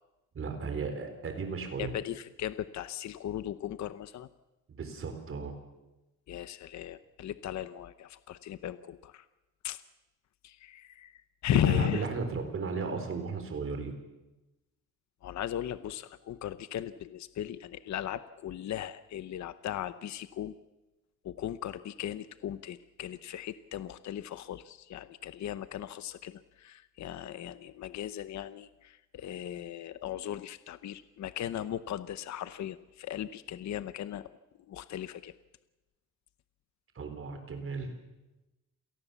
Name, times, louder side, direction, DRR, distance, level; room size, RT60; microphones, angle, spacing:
voice 1, 0.3-1.9 4.7-5.5 11.5-13.9 37.0-37.9, right 4 dB, 40° right, 6 dB, 4.1 m, -35 dB
voice 2, 1.8-4.3 6.3-9.2 9.6-9.8 10.4-12.1 15.2-20.6 21.2-34.3 34.7-35.3, left 11 dB, 55° left, 13 dB, 0.8 m, -36 dB
28.0 x 18.5 x 7.0 m, 1.0 s
cardioid pair, 155°, 33 cm